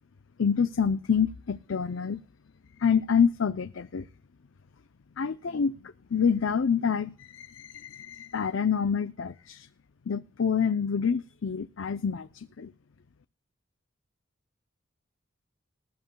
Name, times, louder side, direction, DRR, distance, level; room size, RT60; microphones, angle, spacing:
voice 1, 0.4-2.2 2.8-4.1 5.2-9.7 10.1-12.7, left 6 dB, 80° left, 0.6 m, -27 dB
20.0 x 13.5 x 2.3 m
head